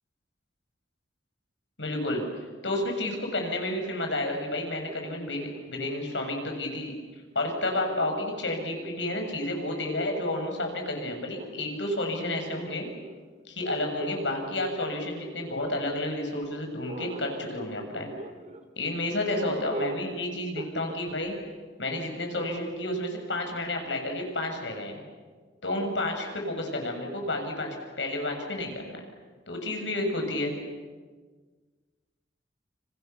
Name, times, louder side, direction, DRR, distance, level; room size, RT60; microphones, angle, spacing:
voice 1, 1.8-2.2 2.6-6.9 7.4-12.9 13.5-18.1 18.8-21.3 21.8-25.0 25.6-29.0 29.5-30.5, left 1 dB, 85° left, 3 dB, 7.2 m, -31 dB
sound 1, 4.3-6.7 7.5-10.5 11.4-16.1 16.9-18.6 19.4-20.1 20.6-21.0, right 1 dB, 40° right, 3.2 m, -42 dB
30.0 x 28.5 x 7.0 m, 1.5 s
head